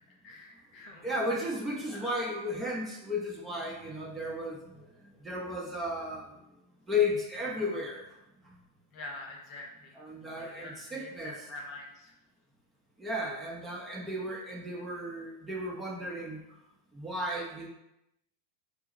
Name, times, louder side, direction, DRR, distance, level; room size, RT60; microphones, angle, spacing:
voice 1, 0.2-1.1 1.9-2.1 8.9-10.0 10.4-12.1 13.0-13.3, left 2 dB, 45° left, 0 dB, 1.0 m, -45 dB
voice 2, 1.0-6.4 6.9-8.1 8.5-8.6 9.9-11.3 13.0-16.4 16.9-17.7, left 2 dB, 15° right, -2 dB, 0.8 m, -34 dB
4.5 x 2.1 x 4.1 m, 0.88 s
hypercardioid pair, 115°, 0 cm